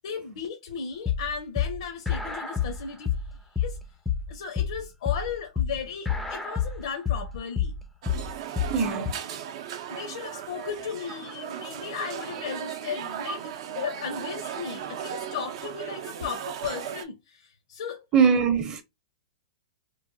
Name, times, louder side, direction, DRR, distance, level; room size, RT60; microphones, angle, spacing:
voice 1, 0.0-3.1 3.6-3.8 4.3-7.8 9.9-18.3, left 7 dB, 70° left, 0.6 m, -36 dB
sound 1, 1.1-9.1, left 7 dB, 5° left, 0.4 m, -29 dB
sound 2, 8.0-17.1, right 9 dB, 55° right, 0.5 m, -37 dB
voice 2, 8.7-9.2 13.3-13.4 18.1-18.8, right 6 dB, 25° right, 0.7 m, -22 dB
3.0 x 2.2 x 2.6 m
hypercardioid pair, 135°, 3 cm